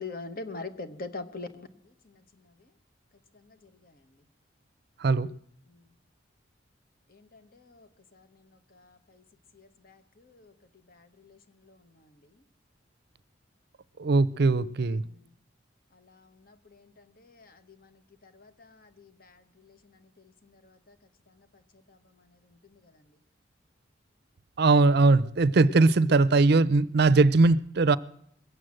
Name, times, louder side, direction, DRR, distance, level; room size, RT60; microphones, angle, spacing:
voice 1, 0.0-1.7 7.1-8.3 8.7-9.2 9.5-10.5 10.9-11.4 11.7-11.8 15.0-15.2 16.0-16.9 17.2-17.9 18.2-19.8 20.6-20.9 21.9-22.0, left 3 dB, 50° left, 1.3 m, -44 dB
voice 2, 14.0-15.0 24.6-28.0, right 3 dB, 60° right, 0.5 m, -20 dB
21.0 x 7.9 x 7.6 m
head